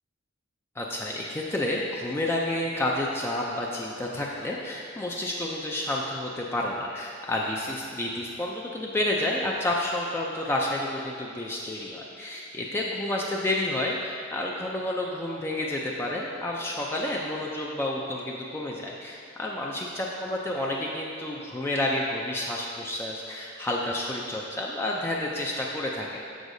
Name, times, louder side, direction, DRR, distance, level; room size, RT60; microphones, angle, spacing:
voice 1, 0.8-26.2, left 1 dB, 10° left, -3 dB, 0.3 m, -30 dB
7.1 x 6.3 x 2.6 m, 2.4 s
head